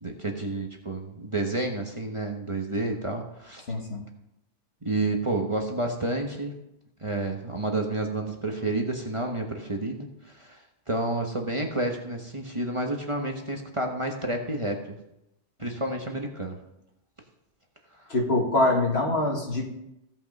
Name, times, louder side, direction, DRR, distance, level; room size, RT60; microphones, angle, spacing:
voice 1, 0.0-3.7 4.8-6.5 7.0-10.6 10.9-15.0 15.6-16.5 18.0-18.1, right 2 dB, 25° right, 2 dB, 1.2 m, -30 dB
voice 2, 3.7-4.0 18.1-19.7, left 2 dB, 60° left, 0 dB, 2.2 m, -24 dB
16.0 x 5.6 x 5.3 m, 0.84 s
omnidirectional pair, 1.2 m